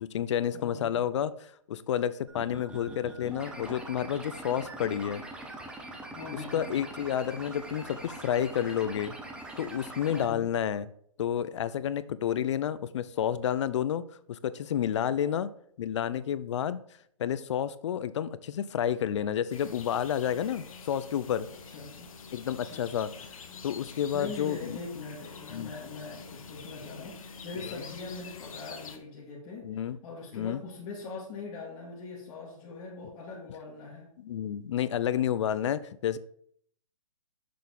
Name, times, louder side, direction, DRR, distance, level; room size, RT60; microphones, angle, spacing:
voice 1, 0.0-5.2 6.5-9.2 9.6-10.8 11.2-14.0 14.3-15.5 15.8-16.8 17.2-21.5 22.3-23.1 23.6-24.6 25.5-25.7 27.7-27.8 29.6-30.0 30.3-30.6 34.2-36.2, left 9 dB, 55° left, 16 dB, 0.5 m, -30 dB
voice 2, 0.5-1.0 6.1-6.7 10.1-10.5 15.1-15.4 21.6-22.1 22.6-22.8 24.1-34.1, left 4 dB, 30° left, -4 dB, 1.7 m, -42 dB
sound 1, 2.3-10.3, right 2 dB, 5° right, 0.7 m, -43 dB
sound 2, 19.5-29.0, left 5 dB, 70° left, 1.1 m, -46 dB
6.6 x 4.0 x 5.3 m, 0.64 s
hypercardioid pair, 145°, 18 cm